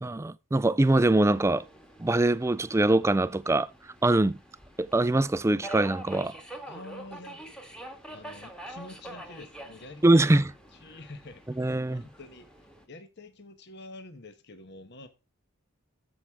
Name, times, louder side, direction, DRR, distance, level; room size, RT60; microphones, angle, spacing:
voice 1, 0.0-1.6 2.0-3.7 4.0-4.4 4.8-6.4 10.0-10.5 11.6-12.0, right 2 dB, 15° right, 0.4 m, -23 dB
Subway metro underground, 0.8-12.9, right 1 dB, 5° left, 1.5 m, -46 dB
voice 2, 6.6-7.5 8.1-10.3 10.7-12.5 12.9-15.1, left 2 dB, 50° left, 1.1 m, -47 dB
13.5 x 4.8 x 3.5 m
head